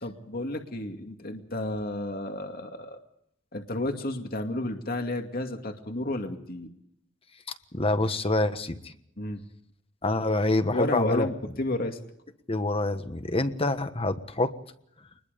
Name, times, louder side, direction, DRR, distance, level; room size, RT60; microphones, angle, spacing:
voice 1, 0.0-3.0 3.5-6.7 9.2-9.4 10.7-12.0, left 1 dB, 50° left, 4 dB, 2.4 m, -31 dB
voice 2, 7.7-8.9 10.0-11.3 12.5-14.5, left 2 dB, 30° left, 10 dB, 1.4 m, -26 dB
25.5 x 21.5 x 5.3 m, 0.72 s
head